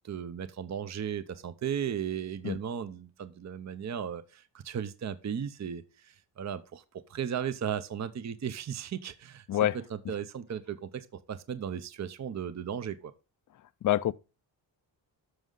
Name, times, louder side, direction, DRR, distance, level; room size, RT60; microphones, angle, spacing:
voice 1, 0.0-6.8 7.1-9.5 9.9-13.1, right 8 dB, 35° right, 0.7 m, -36 dB
voice 2, 13.8-14.1, left 13 dB, 45° left, 0.5 m, -26 dB
13.0 x 6.3 x 3.9 m
wide cardioid pair, 120°, 46 cm